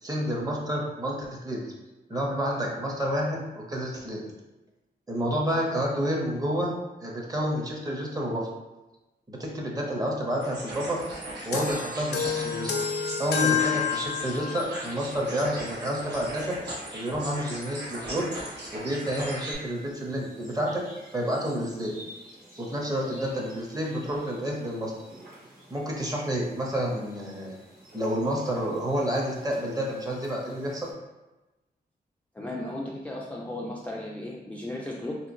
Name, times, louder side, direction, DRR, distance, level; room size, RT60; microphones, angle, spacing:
voice 1, 0.0-1.6 2.1-4.2 5.1-8.5 9.3-11.0 11.5-12.7 13.2-16.6 16.9-18.2 18.7-20.8 21.1-22.0 22.6-24.9 25.7-27.6 27.9-30.9, equal, 20° right, -1 dB, 0.7 m, -29 dB
sound 1, 10.4-19.5, right 1 dB, 85° right, 0.9 m, -38 dB
sound 2, 10.9-30.9, right 1 dB, 55° right, 1.1 m, -51 dB
sound 3, 11.5-14.7, left 7 dB, 75° left, 0.4 m, -28 dB
voice 2, 32.3-35.2, left 1 dB, 10° left, -4 dB, 0.3 m, -35 dB
3.3 x 2.8 x 2.5 m, 1.1 s
wide cardioid pair, 115°, 17 cm